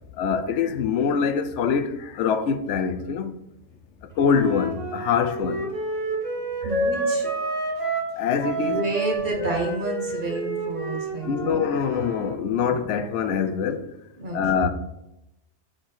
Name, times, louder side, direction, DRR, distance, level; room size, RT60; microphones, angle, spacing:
voice 1, 0.1-3.3 4.0-5.7 6.6-6.8 8.2-8.8 11.2-13.9 14.3-14.7, left 6 dB, 85° left, 0.9 m, -24 dB
Wind instrument woodwind instrument, 4.1-8.1 8.4-12.3, right 2 dB, 30° right, 1.5 m, -29 dB
voice 2, 6.6-7.3 8.6-11.6 14.2-14.7, right 2 dB, 45° right, 1.5 m, -30 dB
4.6 x 4.4 x 5.9 m
omnidirectional pair, 1.2 m